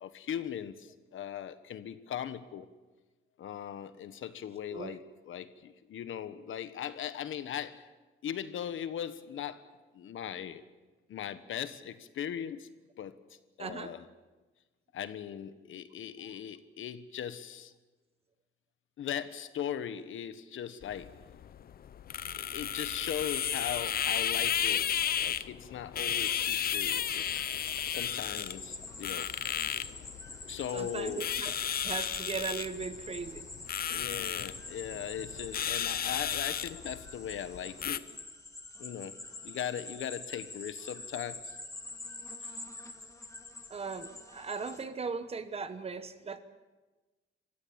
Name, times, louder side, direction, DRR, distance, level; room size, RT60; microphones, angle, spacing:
voice 1, 0.0-2.7 3.4-7.9 8.2-9.6 9.9-10.6 11.1-12.7 13.0-13.1 13.6-14.1 14.9-17.7 19.0-21.2 22.4-27.4 27.9-29.3 30.5-31.5 33.9-38.1 38.8-39.1 39.4-41.6 42.4-42.6, left 9 dB, 75° left, 12 dB, 1.3 m, -39 dB
voice 2, 13.6-13.9 30.7-31.5 31.8-33.5 43.7-46.4, right 5 dB, 30° right, 11 dB, 1.1 m, -38 dB
sound 1, 20.8-38.0, left 9 dB, 45° left, 0.7 m, -34 dB
sound 2, 26.2-44.8, left 3 dB, 15° left, 1.6 m, -46 dB
27.5 x 15.5 x 8.8 m, 1.2 s
wide cardioid pair, 170°, 21 cm